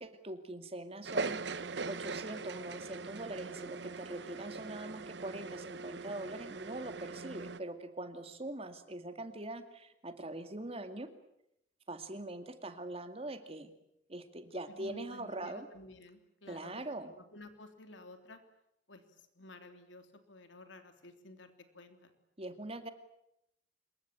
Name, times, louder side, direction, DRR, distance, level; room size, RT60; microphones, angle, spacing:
voice 1, 0.0-11.1 11.9-13.7 14.1-15.7 16.5-17.1 22.4-22.9, right 1 dB, 30° right, 8 dB, 2.3 m, -42 dB
sound 1, 1.0-7.6, right 4 dB, 65° right, 1.0 m, -41 dB
voice 2, 14.7-18.4 18.9-22.1, left 2 dB, 85° left, 7 dB, 3.4 m, -53 dB
26.5 x 22.5 x 9.1 m, 0.80 s
head